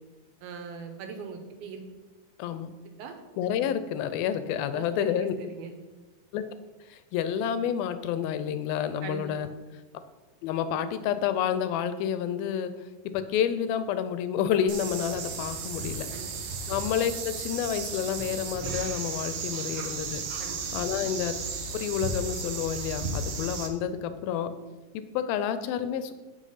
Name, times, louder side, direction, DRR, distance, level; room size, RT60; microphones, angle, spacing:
voice 1, 0.4-1.8 3.0-3.1 4.7-5.7 9.0-9.3 16.1-16.3 20.4-20.6, right 5 dB, 90° right, 5 dB, 3.0 m, -40 dB
voice 2, 2.4-2.7 3.4-5.3 6.3-6.4 6.9-9.5 10.4-12.7 13.1-16.1 16.7-20.3 20.7-21.4 21.7-24.5 24.9-26.1, left 9 dB, 85° left, 11 dB, 2.4 m, -29 dB
sound 1, 14.7-23.7, right 4 dB, 70° right, 2.0 m, -34 dB
8.3 x 5.9 x 5.6 m, 1.2 s
omnidirectional pair, 4.2 m